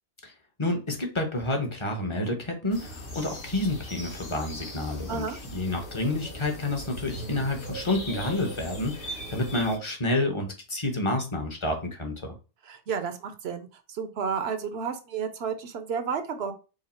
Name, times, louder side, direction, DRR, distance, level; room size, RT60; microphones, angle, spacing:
voice 1, 0.6-5.2 5.5-12.3, left 2 dB, 30° left, 3 dB, 0.8 m, -29 dB
sound 1, 2.7-9.8, equal, 50° left, 1.2 m, -39 dB
voice 2, 12.7-16.5, right 6 dB, 65° right, 8 dB, 0.9 m, -32 dB
4.9 x 2.0 x 4.2 m, 0.32 s
omnidirectional pair, 1.2 m